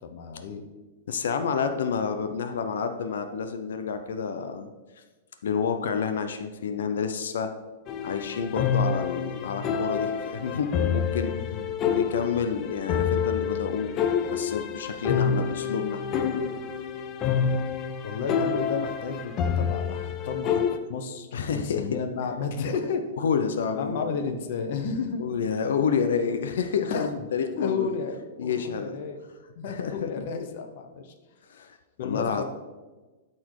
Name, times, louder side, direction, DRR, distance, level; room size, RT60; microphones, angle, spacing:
voice 1, 0.0-0.6 11.5-11.6 18.0-20.6 20.9-23.1 23.7-25.2 26.9-27.1 27.6-29.2 29.5-31.1 32.0-32.4, left 5 dB, 45° left, 5 dB, 0.9 m, -32 dB
voice 2, 1.1-4.7 5.4-7.5 8.0-11.3 11.8-13.9 14.3-16.0 21.3-21.8 23.2-24.1 25.2-28.0 28.4-28.9 29.7-30.1 31.5-32.4, left 6 dB, 80° left, 7 dB, 0.8 m, -29 dB
sound 1, 7.9-20.8, left 7 dB, 20° left, 0.5 m, -28 dB
12.0 x 4.4 x 4.8 m, 1.2 s
supercardioid pair, 175°, 0 cm